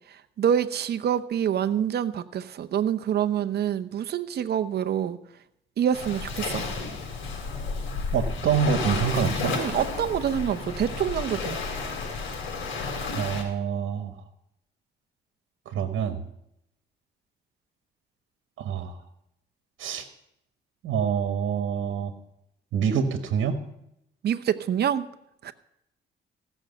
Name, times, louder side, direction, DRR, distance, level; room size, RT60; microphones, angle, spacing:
voice 1, 0.4-5.2 5.8-6.6 9.5-11.6 24.2-25.1 25.4-25.5, right 9 dB, 55° right, 11 dB, 0.8 m, -26 dB
Waves surf, 5.9-13.4, left 4 dB, 85° left, 3.8 m, -32 dB
voice 2, 8.1-9.6 13.1-14.2 15.6-16.2 18.6-19.0 19.8-20.1 20.8-22.1 22.7-23.6, right 7 dB, 75° right, 8 dB, 1.4 m, -26 dB
15.5 x 6.3 x 7.8 m, 0.80 s
cardioid pair, 90°, 20 cm